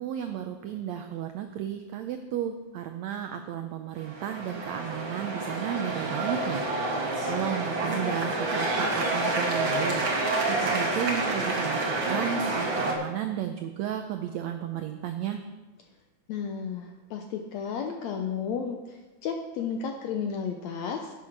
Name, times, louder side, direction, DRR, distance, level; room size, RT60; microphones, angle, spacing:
voice 1, 0.0-15.4, right 10 dB, 85° right, 7 dB, 1.5 m, -33 dB
sound 1, 4.0-12.9, right 2 dB, 45° right, 1.9 m, -28 dB
voice 2, 16.3-21.1, left 6 dB, 80° left, 4 dB, 1.6 m, -33 dB
10.5 x 8.2 x 6.0 m, 1.2 s
omnidirectional pair, 3.9 m